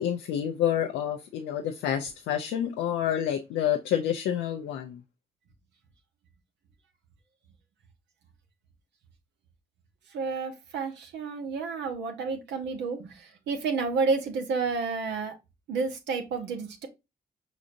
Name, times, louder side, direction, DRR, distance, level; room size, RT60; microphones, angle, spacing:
voice 1, 0.0-5.0, left 10 dB, 90° left, 4 dB, 0.5 m, -28 dB
voice 2, 10.1-15.3 15.7-16.9, right 4 dB, 85° right, 4 dB, 1.0 m, -30 dB
5.0 x 4.0 x 2.5 m, 0.24 s
supercardioid pair, 45°, 18 cm